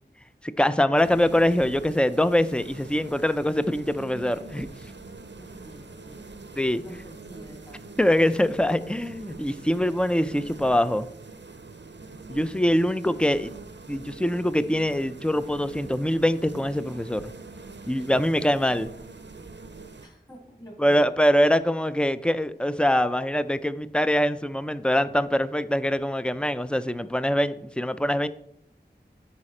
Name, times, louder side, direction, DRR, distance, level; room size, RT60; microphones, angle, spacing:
voice 1, 0.4-4.7 6.6-6.8 8.0-11.1 12.3-13.5 13.9-17.3 17.9-18.9 20.8-28.3, equal, 5° left, 13 dB, 0.4 m, -23 dB
sound 1, 0.9-20.1, right 3 dB, 80° right, 0.6 m, -44 dB
voice 2, 5.4-6.2 6.8-7.8 20.0-21.2, equal, 20° left, -2 dB, 3.5 m, -47 dB
9.8 x 4.2 x 4.3 m, 0.72 s
wide cardioid pair, 40°, 18 cm